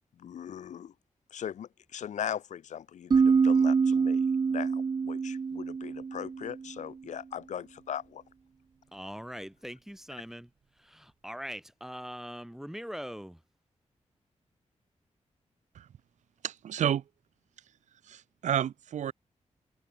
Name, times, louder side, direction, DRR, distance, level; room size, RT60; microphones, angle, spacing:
voice 1, 0.1-0.9 1.3-8.2, left 9 dB, 90° left, 0.7 m, -39 dB
sound 1, 3.1-6.7, right 5 dB, 35° right, 0.5 m, -25 dB
voice 2, 8.9-10.5 10.9-13.4, equal, 5° right, 0.8 m, -41 dB
voice 3, 16.4-17.0 18.1-19.1, right 10 dB, 85° right, 0.5 m, -30 dB
wide cardioid pair, 120°, 12 cm